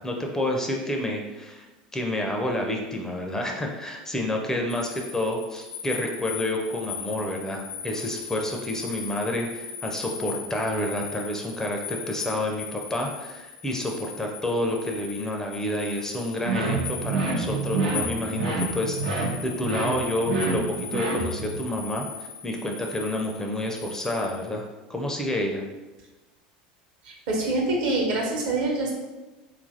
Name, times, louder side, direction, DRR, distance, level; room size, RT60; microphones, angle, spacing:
voice 1, 0.0-1.7 1.9-25.6, left 1 dB, 10° left, 1 dB, 0.4 m, -29 dB
sound 1, 4.7-24.5, left 6 dB, 75° left, 0.7 m, -38 dB
sound 2, 16.4-21.6, right 3 dB, 85° right, 0.5 m, -28 dB
voice 2, 27.0-28.9, right 2 dB, 65° right, -1 dB, 0.9 m, -25 dB
2.8 x 2.4 x 2.6 m, 1.1 s
hypercardioid pair, 85°, 4 cm